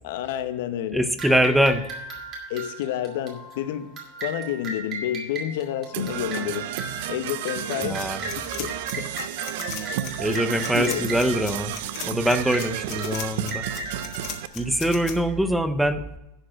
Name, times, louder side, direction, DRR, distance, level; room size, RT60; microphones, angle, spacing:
voice 1, 0.0-1.1 2.5-3.9 4.2-6.7 7.1-8.1 8.3-9.1 10.7-11.2, left 11 dB, 65° left, 10 dB, 0.8 m, -29 dB
voice 2, 0.9-1.9 7.8-8.2 10.2-11.8 12.0-13.7 14.5-16.0, equal, ahead, 10 dB, 0.5 m, -23 dB
sound 1, 1.2-15.3, right 2 dB, 30° right, 2.4 m, -37 dB
Percussion / Brass instrument, 5.9-14.5, right 12 dB, 60° right, 0.4 m, -32 dB
sound 2, 8.0-15.1, left 9 dB, 40° left, 1.5 m, -37 dB
11.5 x 4.6 x 7.6 m, 0.95 s
supercardioid pair, 165°, 0 cm